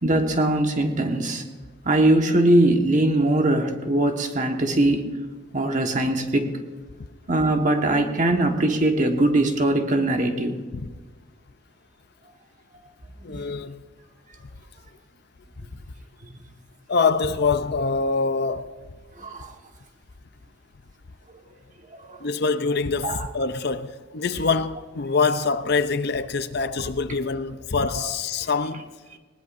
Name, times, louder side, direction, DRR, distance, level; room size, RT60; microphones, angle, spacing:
voice 1, 0.0-1.4 1.8-5.1 5.5-6.5 7.3-10.6 13.3-13.4 15.6-15.7 16.2-16.4 19.2-19.5 21.9-22.2 23.0-23.3, right 1 dB, 40° right, 1.4 m, -21 dB
voice 2, 13.2-13.8 15.6-15.7 16.9-18.7 22.2-28.9, left 4 dB, 55° left, 0.6 m, -25 dB
19.5 x 19.5 x 2.6 m
head